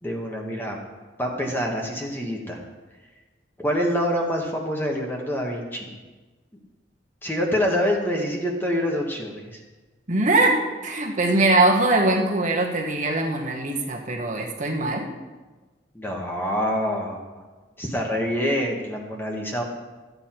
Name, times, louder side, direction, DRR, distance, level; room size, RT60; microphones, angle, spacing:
voice 1, 0.0-0.8 1.2-2.6 3.6-6.0 7.2-9.6 15.9-17.2 17.8-19.6, equal, 10° left, 0 dB, 1.4 m, -26 dB
voice 2, 10.1-15.1, right 2 dB, 40° right, 0 dB, 1.3 m, -22 dB
13.5 x 8.1 x 4.5 m, 1.3 s
head